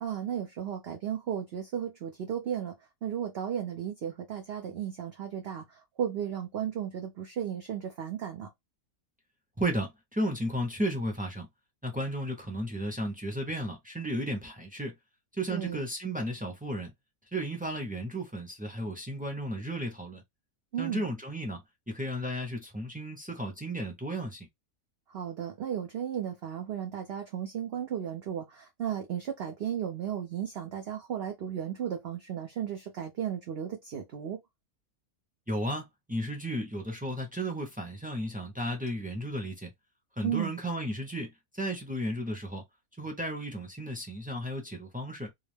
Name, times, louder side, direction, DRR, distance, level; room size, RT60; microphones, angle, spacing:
voice 1, 0.0-2.8 3.0-8.5 15.5-15.8 20.7-21.0 25.1-34.4 40.2-40.5, right 9 dB, 60° right, 0.7 m, -34 dB
voice 2, 9.6-11.5 11.8-14.9 15.4-16.9 17.3-20.2 20.8-21.6 21.9-24.5 35.5-39.7 40.2-41.3 41.6-42.6 43.0-45.3, right 1 dB, 10° right, 0.4 m, -34 dB
2.5 x 2.3 x 3.2 m
omnidirectional pair, 1.6 m